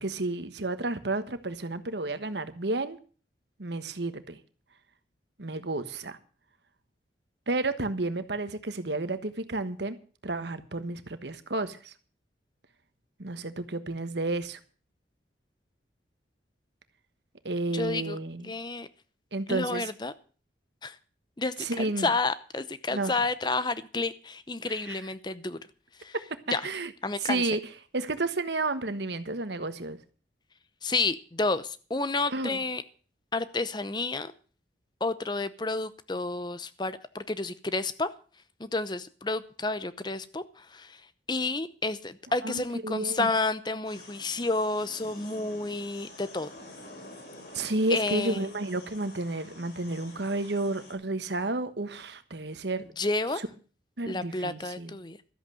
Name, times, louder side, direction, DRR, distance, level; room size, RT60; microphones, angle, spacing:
voice 1, 0.0-3.0 3.6-4.4 5.4-6.2 7.5-10.0 10.2-11.9 13.2-14.6 17.4-18.5 19.3-19.9 21.6-22.1 22.9-23.1 24.9-25.0 26.6-26.9 27.2-27.6 27.9-30.0 32.3-32.6 42.4-43.3 47.5-52.8 54.0-55.0, right 2 dB, 70° right, 1.3 m, -31 dB
voice 2, 17.7-18.2 18.4-18.9 19.5-20.1 20.8-21.0 21.4-25.6 26.0-26.1 26.5-26.7 27.0-27.4 30.8-32.8 33.3-34.3 35.0-38.1 38.6-41.0 41.3-46.5 47.9-48.5 53.0-53.4 54.1-55.2, left 3 dB, 25° left, 0.7 m, -30 dB
sound 1, 43.8-50.9, left 2 dB, 60° left, 4.7 m, -48 dB
13.5 x 8.1 x 7.6 m
head